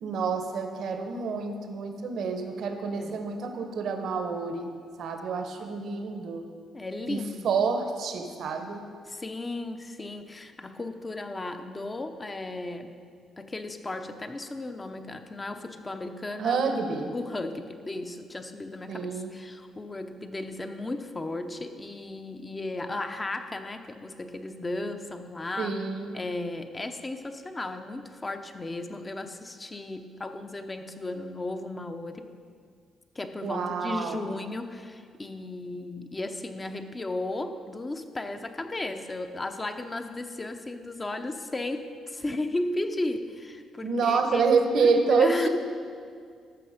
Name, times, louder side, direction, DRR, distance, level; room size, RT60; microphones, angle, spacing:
voice 1, 0.0-4.7 5.0-6.4 7.1-8.8 16.4-17.1 18.9-19.3 25.6-26.2 33.4-34.3 43.8-45.5, right 5 dB, 70° right, 5 dB, 1.1 m, -27 dB
voice 2, 6.7-7.6 8.3-8.8 9.1-13.0 13.4-25.8 26.1-32.3 33.1-44.5 44.8-45.5, left 2 dB, 25° left, 7 dB, 0.8 m, -35 dB
13.5 x 6.1 x 5.1 m, 2.1 s
cardioid pair, 75°, 0 cm